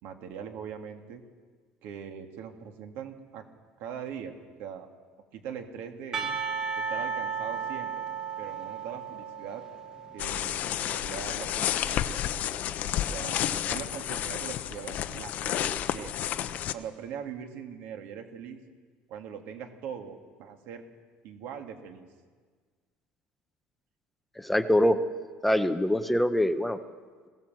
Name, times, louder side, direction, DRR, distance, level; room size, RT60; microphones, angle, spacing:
voice 1, 0.0-1.2 1.8-3.5 3.8-4.3 4.6-4.9 5.3-6.3 6.8-8.1 8.4-9.6 10.1-12.1 13.1-16.1 16.7-18.6 19.1-20.8 21.2-22.1, right 8 dB, 65° right, 5 dB, 2.2 m, -41 dB
Percussion / Church bell, 6.1-11.2, right 6 dB, 20° right, 1.4 m, -35 dB
sound 1, 10.2-16.7, left 11 dB, 40° left, 0.6 m, -31 dB
voice 2, 24.4-25.0 25.4-26.8, left 1 dB, 5° left, 9 dB, 0.7 m, -24 dB
21.5 x 17.0 x 7.6 m, 1.6 s
cardioid pair, 180°, 4 cm